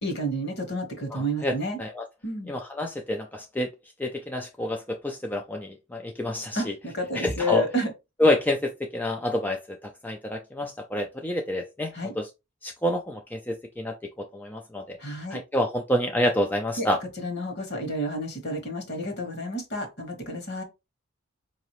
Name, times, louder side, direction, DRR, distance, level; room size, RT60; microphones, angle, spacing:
voice 1, 0.0-1.8 2.2-2.5 6.5-7.9 11.9-12.1 15.0-15.4 16.8-16.9 17.2-20.6, equal, 50° left, 1.3 m, -30 dB
voice 2, 1.1-2.0 2.5-3.7 4.0-6.7 7.1-7.7 8.2-12.3 12.6-13.9 14.3-15.0 15.3-17.0, left 1 dB, 10° left, 0.3 m, -28 dB
4.8 x 2.7 x 3.0 m
head